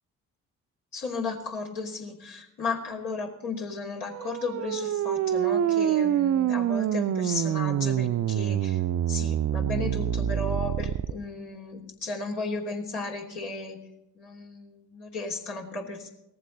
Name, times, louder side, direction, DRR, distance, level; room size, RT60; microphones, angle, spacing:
voice 1, 0.9-8.8 9.1-13.8 14.1-16.1, left 3 dB, 65° left, -1 dB, 3.1 m, -34 dB
sound 1, 4.0-11.1, right 10 dB, 40° right, 0.6 m, -26 dB
18.5 x 14.5 x 4.0 m, 0.85 s
figure-of-eight pair, 45°, 42 cm